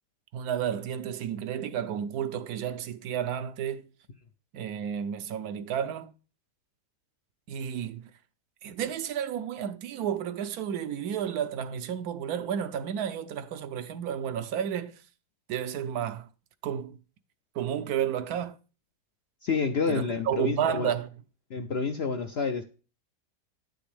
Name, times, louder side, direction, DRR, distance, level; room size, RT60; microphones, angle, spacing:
voice 1, 0.3-3.9 4.5-6.1 7.5-8.0 8.6-14.9 15.5-16.3 16.6-17.0 17.5-18.6 19.9-21.1, right 9 dB, 75° right, 1.1 m, -31 dB
voice 2, 19.4-20.9 21.5-22.6, left 5 dB, 65° left, 0.6 m, -29 dB
9.3 x 6.1 x 3.3 m
omnidirectional pair, 1.7 m